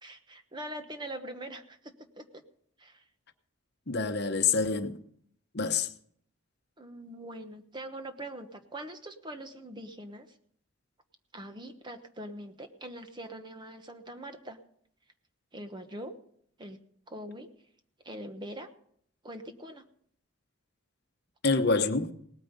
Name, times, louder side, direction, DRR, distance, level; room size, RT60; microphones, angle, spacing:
voice 1, 0.0-2.4 2.8-3.0 6.8-10.3 11.3-14.6 15.5-16.2 16.6-16.8 17.1-17.5 18.0-18.7 19.2-19.8, right 1 dB, 20° right, 1.1 m, -43 dB
voice 2, 3.9-5.0 5.5-5.9 21.4-22.1, left 4 dB, 50° left, 1.0 m, -26 dB
19.0 x 9.3 x 5.3 m
head